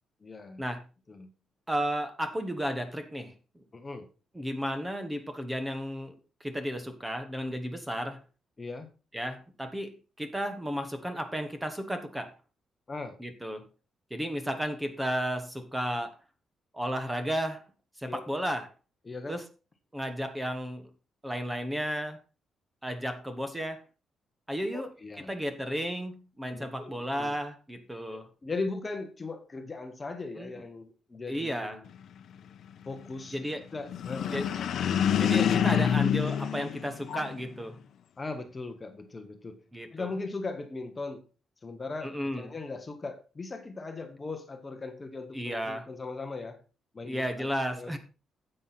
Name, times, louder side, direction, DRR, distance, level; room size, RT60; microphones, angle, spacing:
voice 1, 0.2-0.6 1.1-1.3 3.7-4.1 8.6-8.9 12.9-13.2 18.1-18.2 19.0-19.4 24.7-25.3 26.5-26.9 27.2-27.4 28.1-31.8 32.9-33.4 33.7-34.5 38.2-39.6 39.9-41.3 41.6-46.6 46.9-48.0, left 3 dB, 20° left, 1.1 m, -39 dB
voice 2, 1.7-3.3 4.3-8.2 9.1-12.3 13.2-13.7 14.1-16.1 16.7-17.6 18.0-18.7 19.3-19.4 19.9-20.9 21.2-22.2 22.8-23.8 24.5-28.3 30.4-30.5 31.3-31.8 33.3-33.7 34.3-34.5 35.2-37.8 39.7-40.1 42.0-42.5 45.3-45.9 47.0-48.0, equal, 10° right, 1.1 m, -33 dB
sound 1, 33.9-37.5, left 9 dB, 60° left, 0.8 m, -27 dB
9.9 x 7.8 x 4.1 m
cardioid pair, 160°, 0 cm